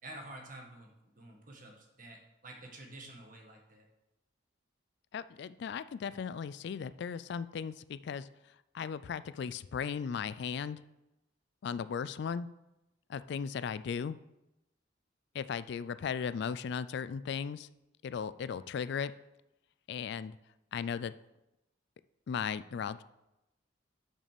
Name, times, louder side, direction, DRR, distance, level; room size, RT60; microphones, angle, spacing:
voice 1, 0.0-3.9, right 1 dB, 45° right, 2 dB, 1.6 m, -49 dB
voice 2, 5.1-8.3 8.7-10.8 11.6-12.5 13.1-14.2 15.3-17.7 18.0-19.1 19.9-20.4 20.7-21.1 22.3-23.0, left 6 dB, 60° left, 15 dB, 0.3 m, -36 dB
6.5 x 6.2 x 6.7 m, 0.93 s
head